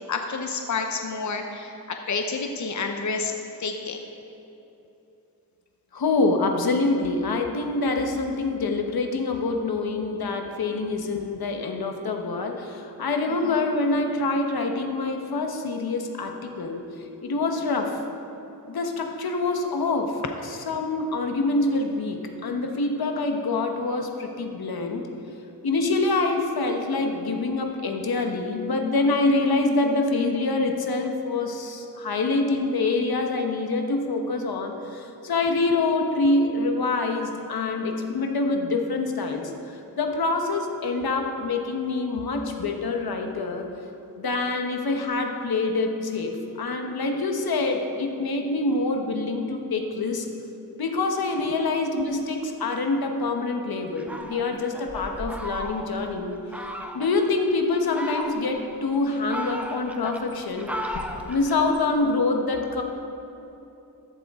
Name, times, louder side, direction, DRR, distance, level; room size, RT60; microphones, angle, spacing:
voice 1, 0.1-3.3 3.6-4.0 13.3-13.6, left 4 dB, 55° left, 4 dB, 0.8 m, -29 dB
voice 2, 5.9-16.9 17.2-18.0 18.6-25.1 25.6-43.7 44.2-50.3 50.8-56.4 56.9-62.8, left 3 dB, 85° left, 4 dB, 1.2 m, -26 dB
Fowl, 54.0-56.0 56.5-57.1 57.7-58.7 59.1-61.9, equal, 5° right, 0.8 m, -35 dB
14.0 x 12.0 x 3.7 m, 2.9 s
wide cardioid pair, 130°, 36 cm